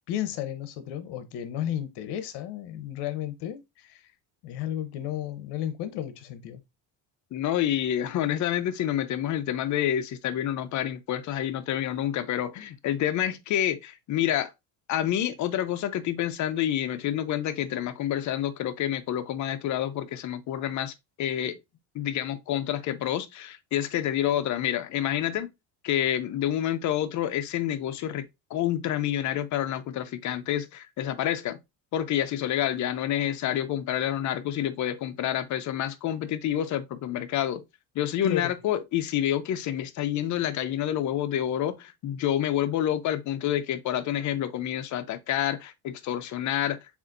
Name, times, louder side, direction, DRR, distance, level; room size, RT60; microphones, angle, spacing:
voice 1, 0.1-4.1 4.4-6.6 38.2-38.5, left 11 dB, 70° left, 1.0 m, -33 dB
voice 2, 7.3-14.5 14.9-21.6 21.9-25.5 25.8-28.2 28.5-31.6 31.9-37.6 38.0-46.8, left 11 dB, 45° left, 0.6 m, -28 dB
7.0 x 2.6 x 2.6 m
cardioid pair, 130°, 42 cm